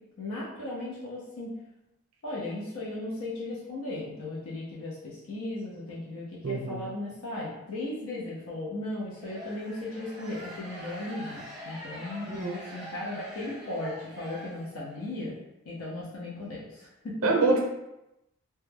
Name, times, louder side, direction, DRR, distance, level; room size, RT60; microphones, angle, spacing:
voice 1, 0.2-1.6 2.2-12.3 12.6-15.3 15.6-17.3, left 2 dB, 75° left, -6 dB, 0.5 m, -36 dB
voice 2, 6.4-6.8 12.3-12.6 17.2-17.6, right 2 dB, 75° right, 1 dB, 0.5 m, -25 dB
sound 1, 9.1-15.0, equal, ahead, 0.6 m, -44 dB
2.2 x 2.1 x 3.2 m, 0.90 s
head